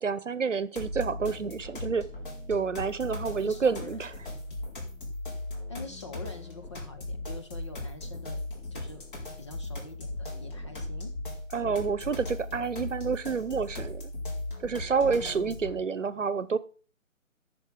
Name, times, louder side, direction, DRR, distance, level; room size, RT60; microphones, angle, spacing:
voice 1, 0.0-2.1 2.5-4.1 11.5-14.1 14.6-16.6, right 5 dB, 65° right, 1.0 m, -29 dB
sound 1, 0.8-15.8, left 2 dB, 40° left, 4.2 m, -38 dB
voice 2, 3.4-4.0 5.7-8.4 8.7-9.0 9.4-11.1 15.0-15.6, left 2 dB, 20° left, 0.8 m, -45 dB
13.0 x 6.9 x 4.9 m
figure-of-eight pair, 150°, 40 cm